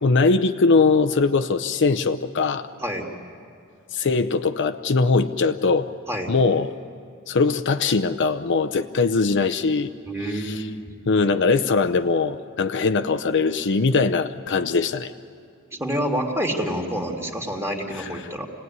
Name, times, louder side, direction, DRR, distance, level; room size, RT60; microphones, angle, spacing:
voice 1, 0.0-2.7 3.9-5.9 6.3-6.7 7.3-9.9 10.3-10.6 11.1-15.1 18.0-18.1, left 4 dB, 55° left, 7 dB, 0.6 m, -21 dB
voice 2, 2.8-3.1 6.1-6.3 10.1-10.8 15.7-18.5, equal, 10° right, 0 dB, 2.3 m, -27 dB
26.5 x 18.0 x 9.5 m, 2.2 s
head